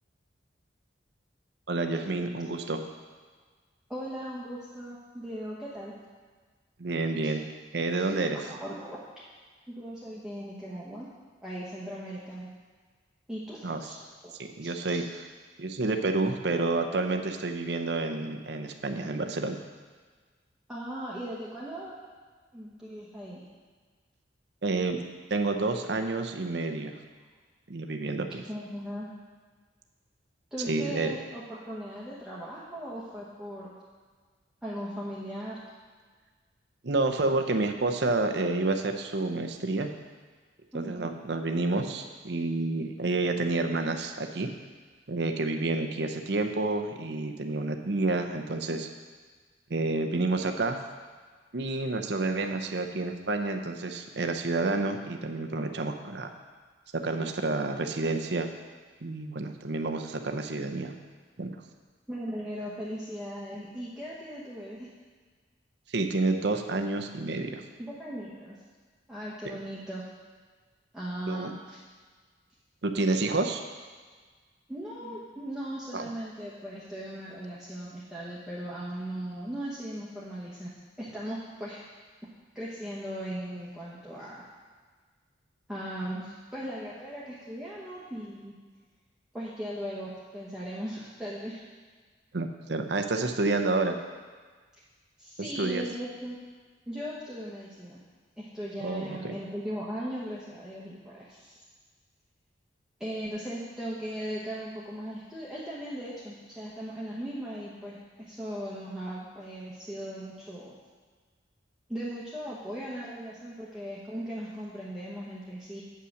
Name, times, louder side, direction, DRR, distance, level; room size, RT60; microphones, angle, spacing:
voice 1, 1.7-2.8 6.8-7.4 7.7-8.4 13.6-13.8 14.4-15.3 15.6-19.6 24.6-25.0 25.3-26.9 27.7-28.4 30.7-31.1 36.8-39.9 40.7-44.5 45.1-48.9 49.7-50.8 51.5-56.3 57.0-58.5 59.0-60.9 61.4-61.5 65.9-67.6 69.4-69.6 71.3-71.5 72.8-73.6 75.9-76.1 92.3-93.9 95.6-95.8 98.8-99.3, right 3 dB, 65° right, 5 dB, 0.7 m, -29 dB
voice 2, 3.9-5.9 7.2-7.3 8.4-9.0 9.7-11.1 11.4-12.5 13.3-14.7 20.7-21.9 22.5-23.4 28.5-29.1 30.5-33.7 34.6-35.6 40.7-41.1 62.1-64.9 67.8-68.6 69.1-70.0 70.9-71.8 74.7-80.7 81.0-81.8 82.5-84.4 85.7-88.5 89.3-91.6 95.2-96.4 96.9-98.0 98.4-101.6 103.0-110.7 111.9-115.8, equal, 5° right, -8 dB, 1.1 m, -38 dB
8.7 x 5.6 x 6.4 m, 1.5 s
head